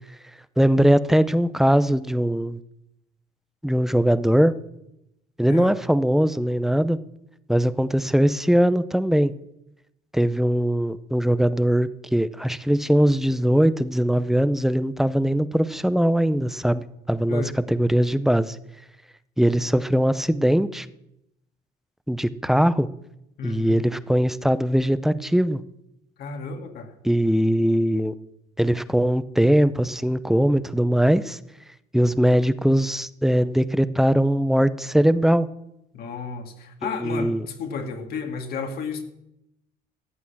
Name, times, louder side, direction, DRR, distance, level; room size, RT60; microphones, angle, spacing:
voice 1, 0.6-2.6 3.6-4.5 5.4-7.0 7.5-9.3 10.1-18.6 19.4-20.9 22.1-22.9 23.4-25.6 27.0-28.1 28.6-31.4 31.9-35.5 36.8-37.5, equal, ahead, 14 dB, 0.6 m, -21 dB
voice 2, 23.4-23.8 26.2-26.9 35.9-39.0, left 5 dB, 65° left, 4 dB, 2.3 m, -32 dB
14.0 x 8.5 x 7.2 m, 0.83 s
cardioid pair, 110°, 17 cm